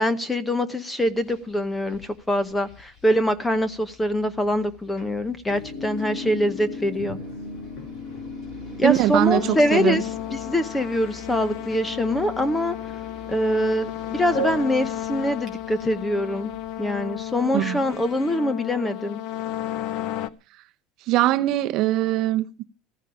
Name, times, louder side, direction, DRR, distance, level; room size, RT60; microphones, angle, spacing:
voice 1, 0.0-7.2 8.8-12.8 13.3-16.5 16.8-19.2, left 1 dB, 5° left, 0.8 m, -24 dB
sound 1, 1.0-18.0, left 4 dB, 30° left, 4.2 m, -48 dB
sound 2, 5.5-12.2 12.9-13.0 14.3-14.7, equal, 70° left, 6.0 m, -35 dB
voice 2, 8.8-10.0 17.5-17.8 21.1-22.6, right 15 dB, 40° right, 0.8 m, -22 dB
sound 3, 9.2-20.3, left 13 dB, 50° left, 0.8 m, -33 dB
15.0 x 14.5 x 5.0 m
cardioid pair, 175°, 0 cm